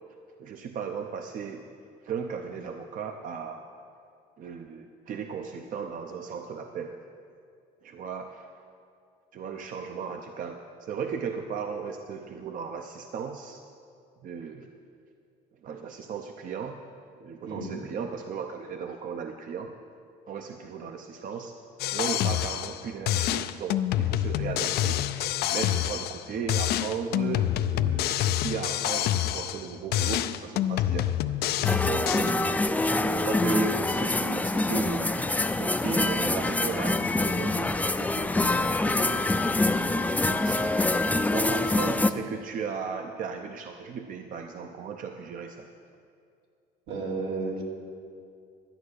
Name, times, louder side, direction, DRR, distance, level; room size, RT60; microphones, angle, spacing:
voice 1, 0.4-1.7 2.0-3.7 4.4-7.0 7.8-8.5 9.3-13.6 14.2-14.7 15.6-16.8 17.2-19.8 20.3-21.6 21.9-25.0 25.5-31.1 31.8-32.6 33.1-35.1 35.6-39.3 40.1-40.7 41.3-45.7, right 6 dB, 50° right, 5 dB, 0.7 m, -36 dB
voice 2, 17.5-17.8 46.9-47.6, right 3 dB, 80° right, -2 dB, 2.4 m, -33 dB
sound 1, 21.8-22.8 23.1-26.2 26.5-29.7 29.9-32.3, left 12 dB, 70° left, 0.5 m, -27 dB
sound 2, 31.6-42.1, left 2 dB, 10° left, 0.4 m, -25 dB
12.0 x 8.5 x 6.5 m, 2.4 s
cardioid pair, 110°, 17 cm